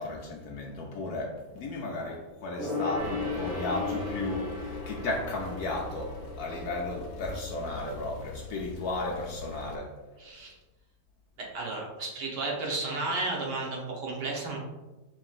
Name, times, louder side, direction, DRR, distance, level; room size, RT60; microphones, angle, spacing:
voice 1, 0.0-9.9, left 2 dB, 70° left, -1 dB, 0.9 m, -34 dB
Gong, 2.6-8.5 8.7-8.8, left 2 dB, 50° right, 1.7 m, -36 dB
Male speech man speaking / Car / Idling, 3.0-9.8, left 3 dB, 85° left, 1.3 m, -43 dB
voice 2, 10.2-10.5 11.4-14.6, right 3 dB, 65° right, -2 dB, 1.5 m, -33 dB
5.9 x 3.1 x 2.4 m, 1.1 s
omnidirectional pair, 2.0 m